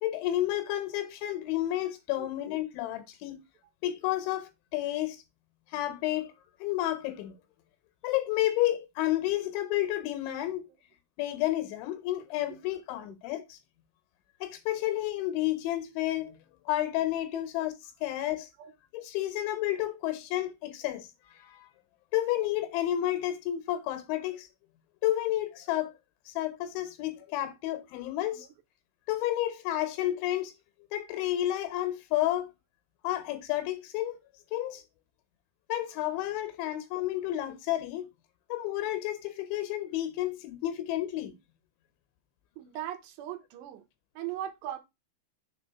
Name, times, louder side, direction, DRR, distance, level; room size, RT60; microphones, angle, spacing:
voice 1, 0.0-3.4 3.8-5.2 5.7-6.3 6.6-7.4 8.0-10.7 11.2-13.6 14.4-16.3 16.7-17.7 18.0-18.5 18.9-21.1 21.3-21.7 22.1-24.5 25.0-25.9 26.3-28.5 29.1-30.5 30.9-32.5 33.0-34.2 34.5-34.8 35.7-38.1 38.5-41.3, left 14 dB, 80° left, 3.3 m, -31 dB
voice 2, 42.6-43.8 44.2-44.8, right 11 dB, 75° right, 3.1 m, -38 dB
7.0 x 3.8 x 5.6 m
omnidirectional pair, 5.3 m